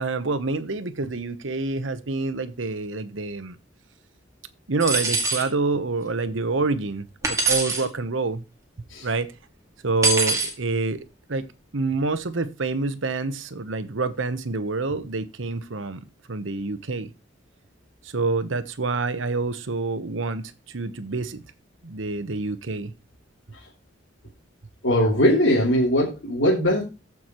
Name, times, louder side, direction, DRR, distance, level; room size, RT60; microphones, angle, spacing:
voice 1, 0.0-3.6 4.7-8.4 9.0-9.3 9.8-11.5 11.7-17.1 18.0-21.4 21.8-22.9, right 3 dB, 80° right, 12 dB, 1.0 m, -27 dB
sound 1, 4.8-5.5 7.2-7.8 10.0-10.5, right 3 dB, 15° right, 2.3 m, -23 dB
voice 2, 24.8-26.8, equal, 85° left, -5 dB, 2.8 m, -20 dB
14.0 x 6.0 x 3.0 m, 0.28 s
head